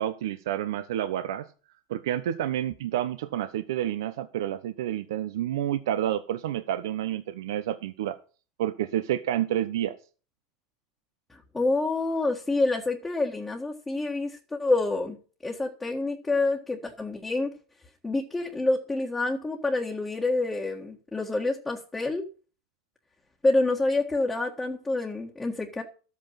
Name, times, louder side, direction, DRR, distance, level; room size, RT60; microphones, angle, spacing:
voice 1, 0.0-1.5 1.9-8.2 8.6-10.0, right 11 dB, 80° right, 11 dB, 0.9 m, -29 dB
voice 2, 11.3-15.2 15.4-17.5 18.0-22.2 23.4-25.8, left 2 dB, 10° left, -1 dB, 1.6 m, -27 dB
13.0 x 8.6 x 5.8 m, 0.37 s
supercardioid pair, 155°, 2 cm